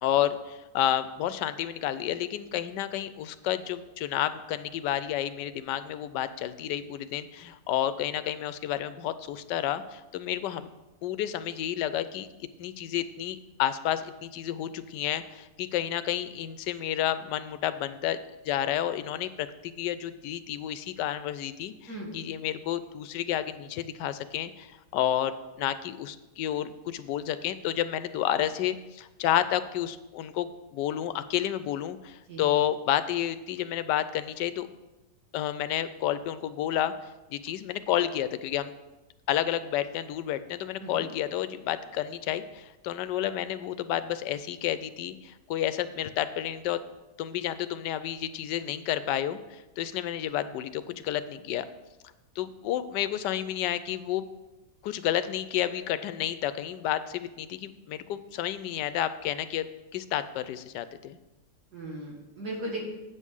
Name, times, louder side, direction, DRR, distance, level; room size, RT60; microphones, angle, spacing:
voice 1, 0.0-10.7 11.0-12.3 12.6-18.2 18.4-34.7 35.3-36.9 37.3-38.7 39.3-46.8 47.2-51.6 52.4-54.2 54.8-59.7 59.9-61.2, left 11 dB, 85° left, 13 dB, 1.2 m, -30 dB
voice 2, 61.7-62.9, right 1 dB, 70° right, -3 dB, 2.7 m, -37 dB
8.4 x 5.5 x 6.3 m, 1.1 s
omnidirectional pair, 1.8 m